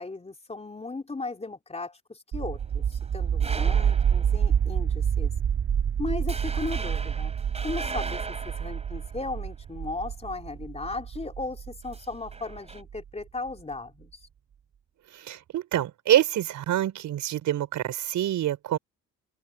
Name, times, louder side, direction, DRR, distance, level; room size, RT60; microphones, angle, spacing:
voice 1, 0.0-5.3 6.0-7.3 7.6-14.2, left 3 dB, 20° left, 3.6 m, -36 dB
sound 1, 2.3-13.0, right 8 dB, 55° right, 4.3 m, -28 dB
sound 2, 2.5-4.8 5.2-5.4 5.8-5.9 6.3-9.8 11.8-12.8, right 3 dB, 20° right, 4.2 m, -39 dB
voice 2, 15.1-18.8, right 12 dB, 80° right, 6.0 m, -26 dB
open air
cardioid pair, 90°, 30 cm